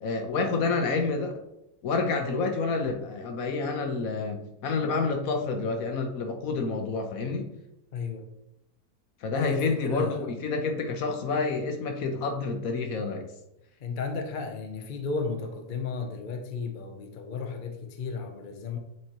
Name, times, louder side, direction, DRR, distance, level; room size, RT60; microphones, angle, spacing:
voice 1, 0.0-1.3 1.8-7.5 9.2-13.3, left 4 dB, 65° left, 4 dB, 1.2 m, -28 dB
voice 2, 7.9-8.3 9.3-10.3 13.8-18.8, left 4 dB, 45° left, 4 dB, 0.7 m, -34 dB
7.7 x 4.3 x 2.9 m, 0.87 s
omnidirectional pair, 1.7 m